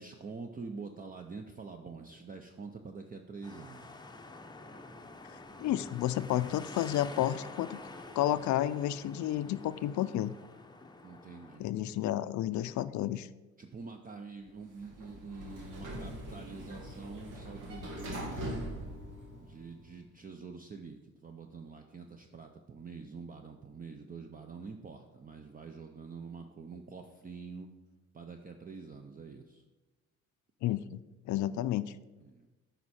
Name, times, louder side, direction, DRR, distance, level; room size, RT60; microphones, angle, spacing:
voice 1, 0.0-4.0 11.0-11.7 13.6-18.6 19.4-27.7 28.1-29.6 32.2-32.5, right 4 dB, 30° right, 5 dB, 0.6 m, -46 dB
sound 1, 3.4-11.6, left 2 dB, 15° left, 0.7 m, -48 dB
voice 2, 5.6-7.8 8.1-10.3 11.6-13.3 30.6-31.0 31.3-31.9, left 12 dB, 70° left, 15 dB, 0.5 m, -31 dB
Sliding door, 14.6-19.8, equal, 85° right, 1.7 m, -42 dB
9.2 x 5.3 x 4.3 m, 1.1 s
cardioid pair, 90°, 30 cm